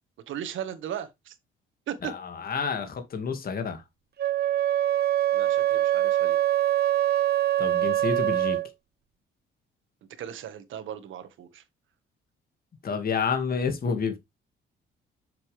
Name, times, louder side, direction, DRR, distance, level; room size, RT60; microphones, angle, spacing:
voice 1, 0.3-1.4 1.9-2.1 5.3-6.4 10.2-11.6, right 10 dB, 75° right, 1.6 m, -37 dB
voice 2, 2.0-3.8 7.6-8.6 12.8-14.2, left 5 dB, 50° left, 2.1 m, -29 dB
Wind instrument woodwind instrument, 4.2-8.7, right 13 dB, 55° right, 0.9 m, -24 dB
7.6 x 7.1 x 3.4 m
cardioid pair, 90°, 20 cm